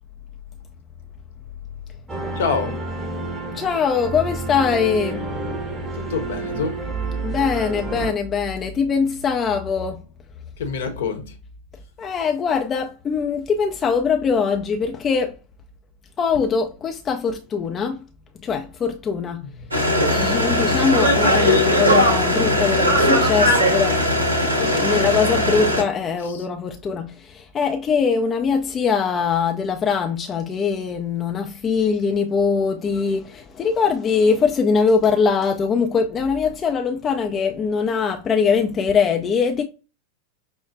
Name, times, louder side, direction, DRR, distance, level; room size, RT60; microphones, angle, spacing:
sound 1, 2.1-8.1, right 3 dB, 15° right, 0.7 m, -29 dB
voice 1, 2.4-2.7 6.0-6.9 10.6-11.3 24.6-25.1 26.3-26.4, left 5 dB, 60° left, 0.8 m, -26 dB
voice 2, 3.5-5.3 7.2-10.0 12.0-15.4 16.2-18.0 18.3-19.5 20.1-24.0 24.8-39.6, left 5 dB, 25° left, 0.3 m, -22 dB
Chantier-Amb+camion present, 19.7-25.8, equal, 80° right, 0.7 m, -19 dB
5.6 x 2.1 x 2.5 m
figure-of-eight pair, 90°, 0 cm